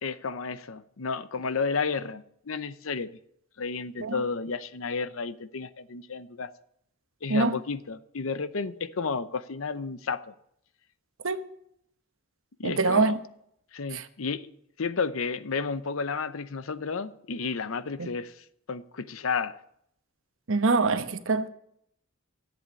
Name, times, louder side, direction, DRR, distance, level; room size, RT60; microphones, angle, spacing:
voice 1, 0.0-3.1 3.6-6.5 7.2-10.3 12.6-13.2 13.7-14.5 14.8-19.6, left 5 dB, 80° left, 0.7 m, -32 dB
voice 2, 12.6-13.2 13.9-14.0 18.0-18.1 20.5-21.5, right 3 dB, 70° right, 1.0 m, -24 dB
14.0 x 8.0 x 8.5 m
head